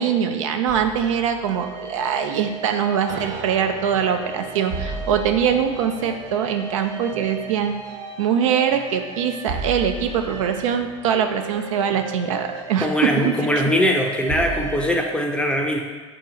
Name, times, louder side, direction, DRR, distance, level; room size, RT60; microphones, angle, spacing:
voice 1, 0.0-7.8 8.2-13.3, right 8 dB, 80° right, 6 dB, 0.4 m, -23 dB
sound 1, 0.7-15.0, right 3 dB, 45° right, 1.3 m, -34 dB
voice 2, 12.8-15.8, equal, 5° left, 1 dB, 0.5 m, -21 dB
3.7 x 2.7 x 4.3 m, 1.5 s
hypercardioid pair, 100°, 17 cm